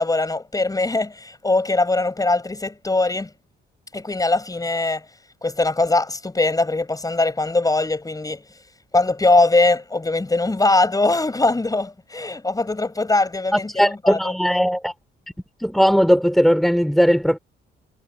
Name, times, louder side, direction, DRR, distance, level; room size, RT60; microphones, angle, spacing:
voice 1, 0.0-3.3 3.9-5.0 5.4-8.4 8.9-14.3, left 2 dB, 20° left, 6.9 m, -21 dB
voice 2, 13.7-14.9 15.6-17.4, equal, ahead, 4.5 m, -18 dB
cardioid pair, 90°, 20 cm